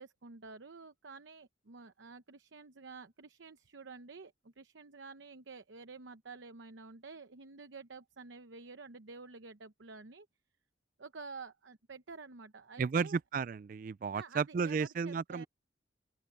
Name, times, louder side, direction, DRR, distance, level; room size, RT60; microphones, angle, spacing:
voice 1, 0.0-10.3 11.0-13.2 14.1-15.5, right 4 dB, 85° right, 0.8 m, -50 dB
voice 2, 12.8-15.4, right 5 dB, 45° right, 0.3 m, -33 dB
open air
head